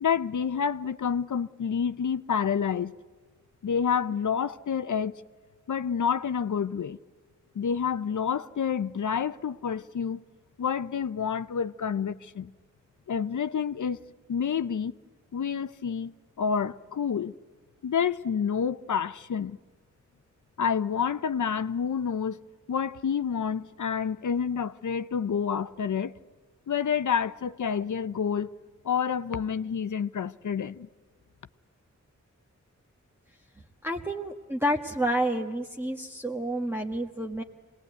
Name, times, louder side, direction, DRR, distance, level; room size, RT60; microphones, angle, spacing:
voice 1, 0.0-2.9 3.6-5.1 5.7-7.0 7.6-10.2 10.6-12.5 13.1-14.0 14.3-14.9 15.3-17.3 17.8-19.6 20.6-22.4 22.7-26.1 26.7-28.5 28.8-30.9, left 7 dB, 80° left, 0.6 m, -28 dB
voice 2, 33.8-37.4, right 1 dB, 10° right, 1.3 m, -29 dB
25.5 x 19.5 x 9.3 m
wide cardioid pair, 75°, 30 cm